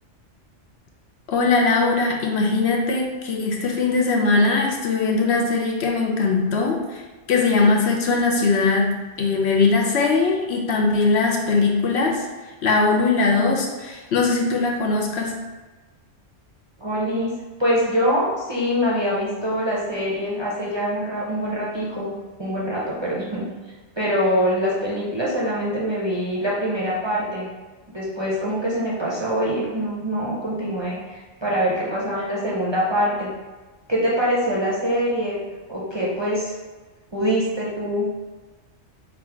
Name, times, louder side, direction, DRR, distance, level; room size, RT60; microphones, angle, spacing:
voice 1, 1.3-7.0 7.3-8.9 9.2-12.2 12.6-15.4, left 3 dB, 70° left, -1 dB, 0.9 m, -20 dB
voice 2, 16.8-22.1 22.4-23.5 24.0-27.5 27.9-33.3 33.9-35.4 35.7-36.5 37.1-38.1, equal, 30° right, -6 dB, 0.6 m, -24 dB
3.9 x 2.4 x 4.4 m, 1.3 s
omnidirectional pair, 1.2 m